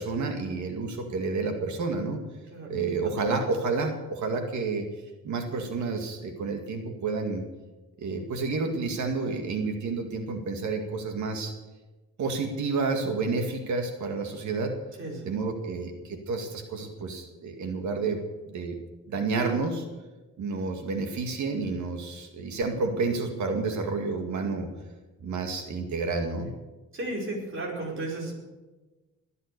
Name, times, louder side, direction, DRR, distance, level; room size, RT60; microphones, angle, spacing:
voice 1, 0.0-2.2 2.7-4.9 5.2-7.4 8.0-11.5 12.2-14.7 15.2-18.2 18.5-18.8 19.1-19.8 20.4-24.7 25.2-26.5, right 4 dB, 70° right, 5 dB, 2.1 m, -30 dB
voice 2, 15.0-15.3 26.9-28.3, right 2 dB, 40° right, -3 dB, 5.1 m, -34 dB
21.5 x 8.2 x 6.8 m, 1.2 s
cardioid pair, 90°, 30 cm